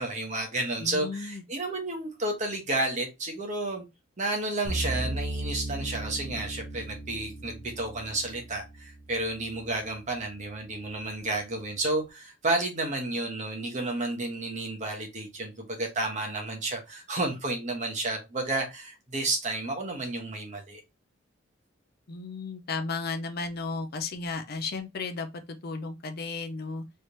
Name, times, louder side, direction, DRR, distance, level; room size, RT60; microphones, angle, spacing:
voice 1, 0.0-3.8 4.2-20.8, right 2 dB, 35° right, 1.1 m, -31 dB
voice 2, 0.8-1.4 22.1-26.8, left 4 dB, 50° left, 0.5 m, -34 dB
sound 1, 4.6-9.8, right 2 dB, 80° right, 1.0 m, -36 dB
3.3 x 3.2 x 2.7 m
head